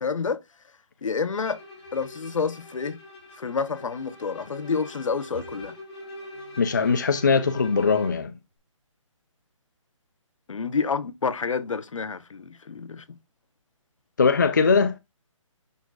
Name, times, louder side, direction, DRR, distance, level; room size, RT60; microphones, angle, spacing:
voice 1, 0.0-0.4 1.0-1.6 1.9-3.0 3.4-5.7 10.5-13.0, left 5 dB, 70° left, 1.0 m, -28 dB
Bowed string instrument, 1.3-8.3, left 1 dB, 15° left, 2.7 m, -43 dB
voice 2, 6.6-8.3 14.2-15.0, left 5 dB, 35° left, 0.5 m, -21 dB
11.0 x 4.1 x 2.3 m
hypercardioid pair, 180°, 17 cm